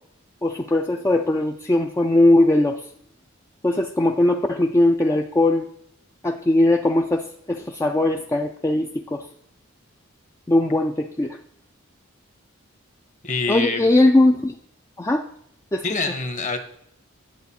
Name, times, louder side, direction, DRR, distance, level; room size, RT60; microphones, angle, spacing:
voice 1, 0.4-2.9 3.6-5.7 6.2-9.3 10.5-11.4 13.5-14.6 15.0-15.2 15.7-16.1, left 1 dB, 15° left, 3 dB, 0.4 m, -20 dB
voice 2, 13.2-13.8 15.8-16.6, left 3 dB, 35° left, 8 dB, 1.0 m, -25 dB
10.5 x 7.8 x 4.2 m, 0.70 s
head